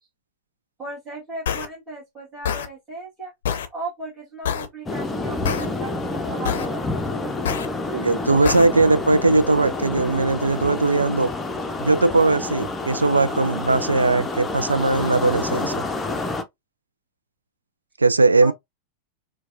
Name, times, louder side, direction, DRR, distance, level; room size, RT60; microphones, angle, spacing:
voice 1, 0.8-3.3 3.7-7.1 18.4-18.5, right 2 dB, 20° right, 1.7 m, -36 dB
sound 1, 1.5-1.7 2.4-2.7 3.4-3.7 4.4-4.7 5.4-5.7 6.5-6.7 7.5-7.7 8.5-8.7, left 8 dB, 60° left, 0.6 m, -25 dB
sound 2, 4.9-16.4, left 2 dB, 15° left, 0.6 m, -28 dB
voice 2, 7.9-11.3 11.8-15.9 18.0-18.5, right 3 dB, 80° right, 0.3 m, -19 dB
4.5 x 2.2 x 2.6 m
figure-of-eight pair, 90°, 0 cm